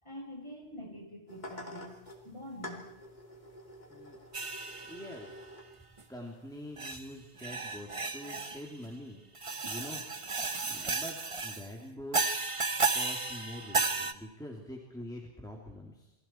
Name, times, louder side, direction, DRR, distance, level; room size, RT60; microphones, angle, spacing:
voice 1, 0.0-2.0 2.2-2.9, equal, 25° left, -1 dB, 6.8 m, -45 dB
sound 1, 1.3-7.4, left 1 dB, 45° left, 2.9 m, -49 dB
sound 2, 4.3-5.2 6.0-6.1 6.8-7.0 7.4-8.7 9.3-11.7 12.1-14.1, right 4 dB, 30° right, 1.0 m, -33 dB
voice 2, 4.9-5.5 6.1-9.2 9.6-10.0 10.7-12.4 12.9-16.1, left 1 dB, 5° left, -1 dB, 2.9 m, -45 dB
28.5 x 21.0 x 4.6 m, 0.95 s
omnidirectional pair, 1.1 m